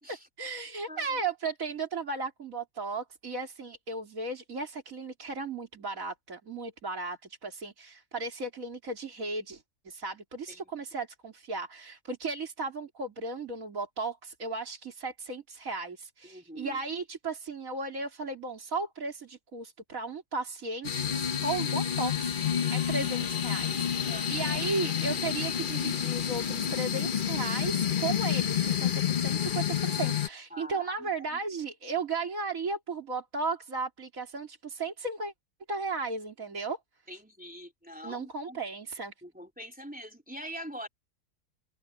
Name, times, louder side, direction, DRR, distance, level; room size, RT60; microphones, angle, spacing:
voice 1, 0.0-35.3 35.7-36.8 38.0-39.1, right 3 dB, 60° right, 3.5 m, -35 dB
voice 2, 0.9-1.2 10.5-10.7 16.2-16.8 24.1-24.6 30.5-31.4 37.1-38.6 39.2-40.9, equal, 5° right, 2.9 m, -44 dB
sound 1, 20.8-30.3, left 8 dB, 45° left, 0.8 m, -29 dB
omnidirectional pair, 1.7 m